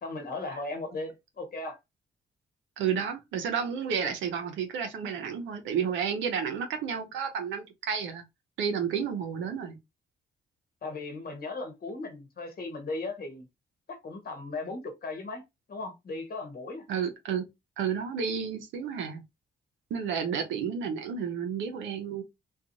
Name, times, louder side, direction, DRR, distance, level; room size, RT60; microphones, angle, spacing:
voice 1, 0.0-1.8 10.8-13.4 13.9-15.4 15.7-16.8, left 3 dB, 50° left, 1.0 m, -37 dB
voice 2, 2.8-8.2 8.6-9.8 16.9-17.4 17.8-19.2 19.9-22.2, right 7 dB, 75° right, 0.6 m, -31 dB
2.5 x 2.3 x 2.7 m
hypercardioid pair, 45°, 20 cm